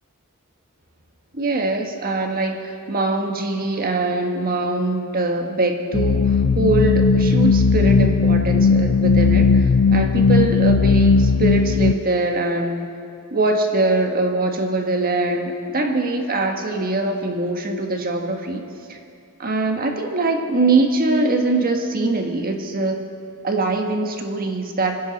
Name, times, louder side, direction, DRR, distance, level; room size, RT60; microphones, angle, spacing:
voice 1, 1.3-12.9 13.3-19.0 19.4-23.0 23.4-25.0, right 2 dB, 40° right, 3 dB, 1.5 m, -22 dB
sound 1, 5.9-11.9, left 5 dB, 70° left, 0.4 m, -16 dB
30.0 x 10.5 x 4.2 m, 2.4 s
head